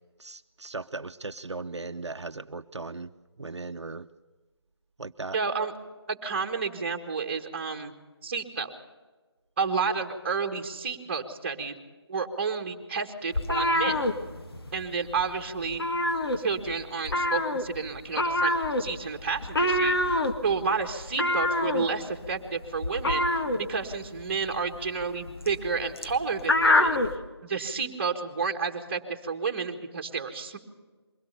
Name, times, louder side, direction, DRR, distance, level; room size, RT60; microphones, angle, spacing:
voice 1, 0.2-3.1 3.4-4.1 5.0-5.4, right 3 dB, 85° right, 8 dB, 0.8 m, -37 dB
voice 2, 5.3-5.7 6.1-7.9 8.2-8.7 9.6-11.7 12.1-14.1 14.7-15.8 16.4-20.2 20.4-27.0 27.4-30.6, right 5 dB, 25° right, 5 dB, 1.8 m, -31 dB
sound 1, 13.3-14.8 15.1-15.3 15.6-16.7 17.1-27.2, left 1 dB, 60° left, 1.9 m, -26 dB
23.0 x 17.0 x 6.9 m, 1.3 s
figure-of-eight pair, 165°, 14 cm